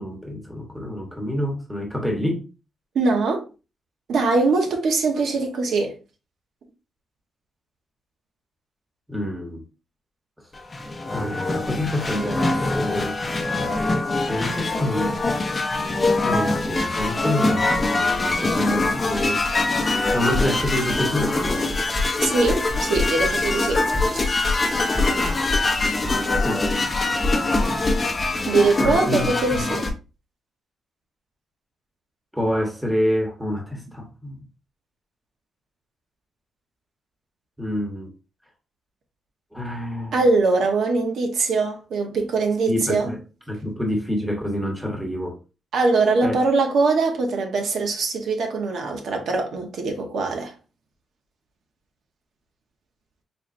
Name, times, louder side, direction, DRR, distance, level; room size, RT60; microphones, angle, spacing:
voice 1, 0.0-2.5 9.1-9.6 11.1-13.2 14.3-15.2 16.2-21.6 26.3-26.6 28.8-29.6 32.3-34.4 37.6-38.1 39.5-40.2 42.6-43.2 43.5-45.4 46.2-46.4, left 1 dB, ahead, 1.0 m, -27 dB
voice 2, 2.9-3.5 4.1-6.0 22.2-23.8 28.5-29.9 40.1-43.1 45.7-50.5, right 3 dB, 70° right, 0.8 m, -22 dB
sound 1, 10.5-29.9, left 2 dB, 25° left, 0.7 m, -23 dB
4.3 x 3.1 x 2.5 m
wide cardioid pair, 140°, 0 cm